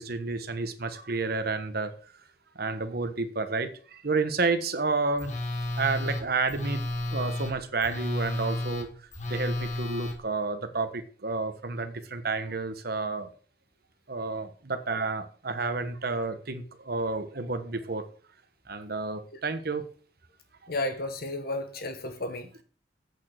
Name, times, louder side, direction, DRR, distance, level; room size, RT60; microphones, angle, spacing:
voice 1, 0.0-1.9 2.5-5.3 5.8-6.8 7.1-8.9 9.3-13.3 14.1-18.0 18.7-19.9, right 3 dB, 60° right, 9 dB, 1.3 m, -30 dB
Telephone, 5.2-10.2, left 1 dB, 40° left, 1.9 m, -32 dB
voice 2, 20.7-22.6, left 1 dB, 60° left, 7 dB, 1.3 m, -33 dB
8.5 x 6.7 x 6.5 m, 0.42 s
head